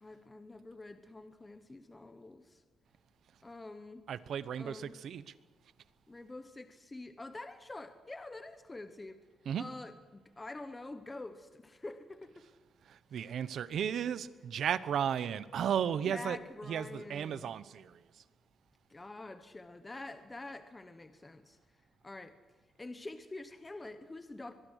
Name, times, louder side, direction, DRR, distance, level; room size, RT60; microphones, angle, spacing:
voice 1, 0.0-2.6 3.4-4.0 4.5-5.0 6.1-9.2 9.6-12.4 13.1-13.4 16.0-17.5 18.9-21.6 22.0-22.4 22.8-24.5, left 2 dB, 15° left, 9 dB, 0.9 m, -46 dB
voice 2, 4.1-5.3 9.5-9.6 12.9-16.4 16.7-18.0, right 8 dB, 60° right, 16 dB, 0.9 m, -34 dB
22.5 x 22.0 x 6.5 m, 1.4 s
wide cardioid pair, 180°, 0 cm